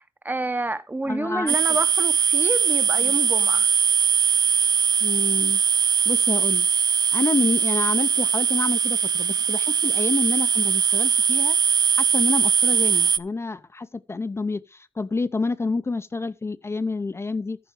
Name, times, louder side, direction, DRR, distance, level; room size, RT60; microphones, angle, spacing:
voice 1, 0.0-3.7, right 2 dB, 20° right, 0.8 m, -28 dB
voice 2, 1.0-1.6 3.1-3.2 5.0-5.6 6.1-6.7 7.1-11.6 12.0-17.6, left 3 dB, 30° left, 0.5 m, -28 dB
sound 1, 1.5-13.2, right 7 dB, 50° right, 0.4 m, -21 dB
14.0 x 4.8 x 4.7 m
wide cardioid pair, 110°, 9 cm